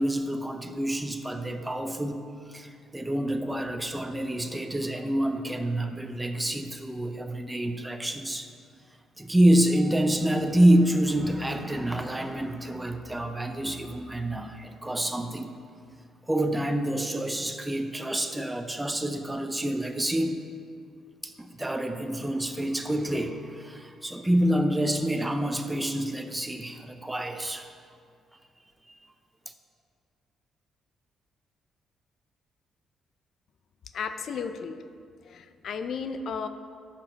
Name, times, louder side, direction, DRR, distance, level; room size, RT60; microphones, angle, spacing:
voice 1, 0.0-8.5 9.2-15.6 16.3-20.4 21.2-27.7, right 1 dB, 10° right, 7 dB, 0.6 m, -27 dB
voice 2, 33.9-34.8 35.2-36.5, left 6 dB, 60° left, 9 dB, 0.5 m, -34 dB
12.5 x 5.9 x 4.5 m, 2.3 s
cardioid pair, 105°, 0 cm